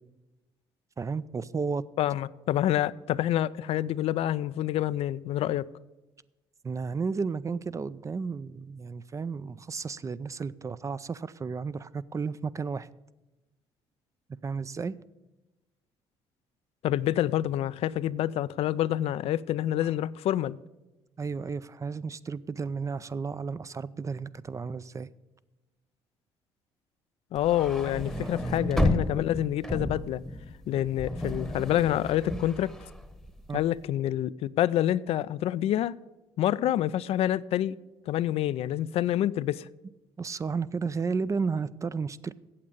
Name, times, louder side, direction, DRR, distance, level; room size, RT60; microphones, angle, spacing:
voice 1, 1.0-1.8 6.6-12.9 14.4-15.0 19.8-19.9 21.2-25.1 33.5-33.6 40.2-42.3, right 5 dB, 30° right, 0.4 m, -33 dB
voice 2, 2.0-5.7 16.8-20.6 27.3-30.2 30.7-32.7 33.5-36.0 36.4-37.8 38.1-39.7, left 12 dB, 65° left, 0.4 m, -27 dB
sound 1, 27.4-33.7, left 1 dB, ahead, 1.0 m, -32 dB
8.6 x 7.5 x 8.4 m
supercardioid pair, 70°, 11 cm